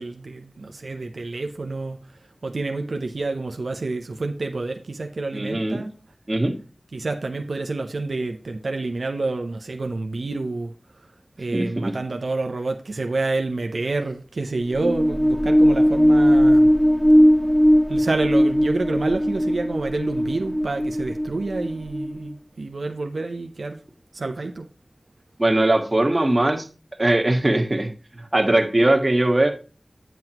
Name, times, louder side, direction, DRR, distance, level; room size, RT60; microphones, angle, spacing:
voice 1, 0.0-2.0 2.4-5.9 6.9-10.7 11.4-16.7 17.9-23.8 24.1-24.7, right 3 dB, 90° right, 0.6 m, -28 dB
voice 2, 5.3-5.8 6.3-6.5 11.5-12.0 25.4-26.7 27.0-29.5, right 1 dB, 40° right, 1.6 m, -20 dB
sound 1, 14.6-22.3, equal, 10° left, 1.6 m, -18 dB
9.1 x 7.7 x 2.9 m
wide cardioid pair, 40°, 0 cm